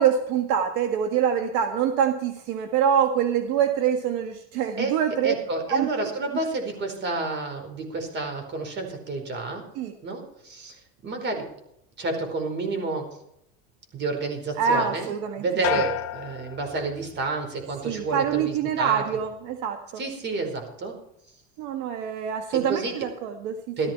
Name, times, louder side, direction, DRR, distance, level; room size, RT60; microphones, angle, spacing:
voice 1, 0.0-5.3 5.7-5.9 9.8-9.9 14.6-15.4 17.8-19.8 21.6-23.8, right 8 dB, 65° right, 6 dB, 1.6 m, -25 dB
voice 2, 5.2-9.6 10.0-11.5 12.0-13.1 13.9-19.0 20.0-21.0 22.5-23.0 23.8-23.9, right 3 dB, 35° right, 5 dB, 4.8 m, -30 dB
sound 1, 15.6-17.4 17.8-18.3, left 15 dB, 50° left, 1.1 m, -32 dB
15.5 x 13.0 x 4.5 m, 0.76 s
supercardioid pair, 135°, 32 cm